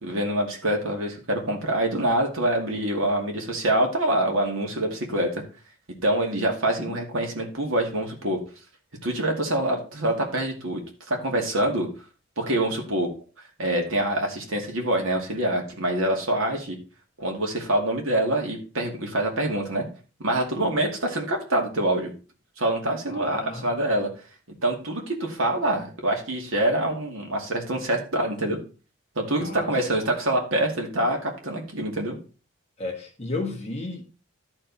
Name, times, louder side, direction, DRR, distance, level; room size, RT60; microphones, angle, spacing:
voice 1, 0.0-5.4 6.0-8.4 9.0-10.8 11.1-11.9 12.4-13.1 13.6-16.8 17.2-19.8 20.2-22.1 22.6-24.1 24.6-28.6 29.2-32.2, right 1 dB, 60° right, 2.4 m, -25 dB
voice 2, 20.5-20.9 23.1-23.7 29.4-29.7 32.8-34.0, left 3 dB, 30° left, 1.7 m, -34 dB
13.0 x 4.5 x 4.2 m
head